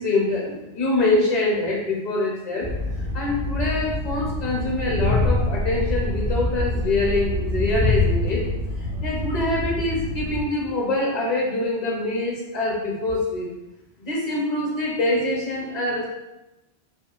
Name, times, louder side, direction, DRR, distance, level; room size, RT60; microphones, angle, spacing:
voice 1, 0.0-2.7 2.9-8.4 9.0-13.5 14.0-16.1, left 2 dB, 45° left, -3 dB, 0.7 m, -24 dB
Train, 2.6-10.4, left 2 dB, 55° right, 0.7 m, -25 dB
2.9 x 2.3 x 2.3 m, 0.97 s
omnidirectional pair, 1.2 m